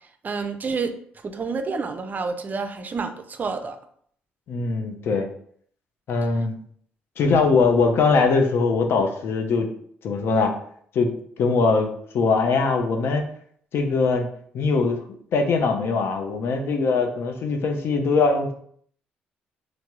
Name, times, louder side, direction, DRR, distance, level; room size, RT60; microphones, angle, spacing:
voice 1, 0.2-0.9 1.2-3.8, right 4 dB, 40° right, 7 dB, 0.4 m, -29 dB
voice 2, 4.5-5.3 6.1-6.6 7.2-9.7 10.0-10.5 10.9-13.2 13.7-14.3 14.5-18.5, left 4 dB, 60° left, 4 dB, 0.5 m, -21 dB
3.4 x 2.0 x 2.9 m, 0.62 s
hypercardioid pair, 50°, 4 cm